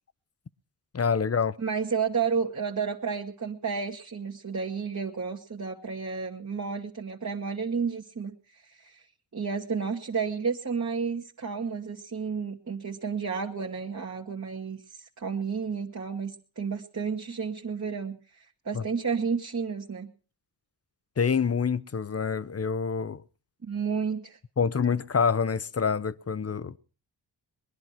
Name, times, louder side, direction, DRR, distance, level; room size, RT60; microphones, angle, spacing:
voice 1, 0.9-1.5 18.7-18.8 21.2-23.2 24.6-26.8, left 6 dB, 35° left, 0.8 m, -26 dB
voice 2, 1.6-9.0 9.3-20.1 23.6-24.4, right 5 dB, 40° right, 1.8 m, -31 dB
21.0 x 11.0 x 5.8 m
cardioid pair, 60°, 43 cm